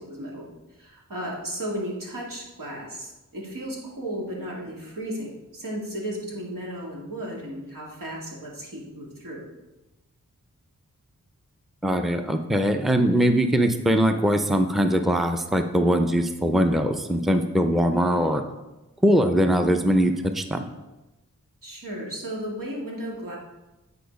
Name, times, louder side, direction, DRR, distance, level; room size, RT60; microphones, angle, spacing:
voice 1, 0.0-9.5 21.6-23.4, right 1 dB, 80° right, -3 dB, 2.2 m, -34 dB
voice 2, 11.8-18.4 19.0-20.7, equal, ahead, 6 dB, 0.6 m, -21 dB
9.2 x 4.3 x 5.2 m, 1.0 s
wide cardioid pair, 55°, 32 cm